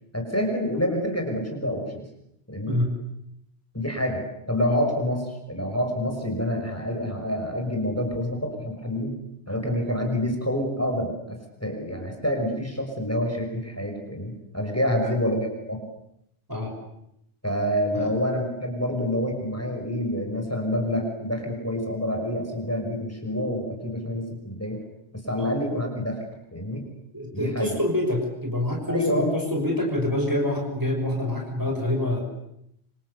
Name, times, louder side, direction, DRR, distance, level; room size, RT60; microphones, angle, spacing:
voice 1, 0.1-2.1 2.5-2.8 3.7-9.1 9.5-15.8 17.4-24.8 25.1-26.2 26.5-26.8 27.3-27.8 28.9-29.3, equal, 15° left, 2 dB, 6.1 m, -27 dB
voice 2, 27.1-32.3, left 1 dB, 20° right, 1 dB, 6.1 m, -26 dB
27.0 x 26.5 x 8.2 m, 0.79 s
omnidirectional pair, 1.1 m